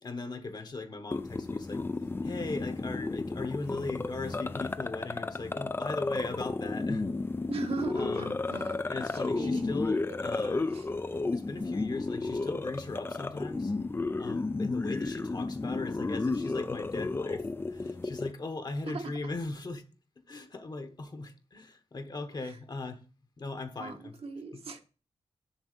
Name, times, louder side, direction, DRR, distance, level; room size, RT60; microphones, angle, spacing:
voice 1, 0.0-1.8 2.2-7.1 7.9-8.3 8.9-10.7 11.3-13.7 14.2-19.8 20.2-23.0 23.4-24.2 24.5-24.6, left 3 dB, 40° left, 1.2 m, -38 dB
sound 1, 1.1-18.3, left 3 dB, 20° left, 0.4 m, -33 dB
voice 2, 7.5-8.8 9.1-9.7 10.7-10.9 18.8-19.1 22.4-22.5 23.8-24.8, right 3 dB, 65° right, 1.3 m, -38 dB
7.2 x 6.8 x 6.6 m
wide cardioid pair, 135°, 10 cm